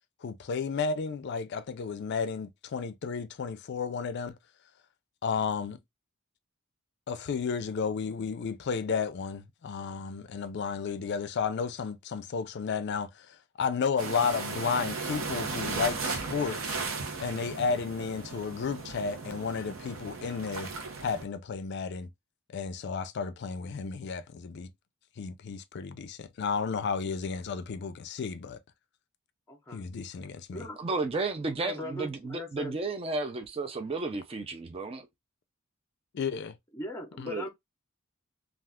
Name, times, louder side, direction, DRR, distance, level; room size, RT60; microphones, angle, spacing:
voice 1, 0.2-4.4 5.2-5.8 7.1-16.8 17.2-20.7 21.0-22.1 22.5-24.7 25.2-28.6 29.7-30.7 36.1-36.5 37.2-37.3, left 5 dB, 55° left, 0.4 m, -32 dB
sound 1, 14.0-21.2, right 4 dB, 70° right, 0.7 m, -36 dB
voice 2, 29.5-29.8 30.5-30.8 31.6-32.7 36.7-37.5, left 1 dB, 15° left, 0.6 m, -39 dB
voice 3, 30.8-35.1 37.3-37.4, right 3 dB, 30° right, 0.4 m, -33 dB
2.4 x 2.3 x 3.4 m
head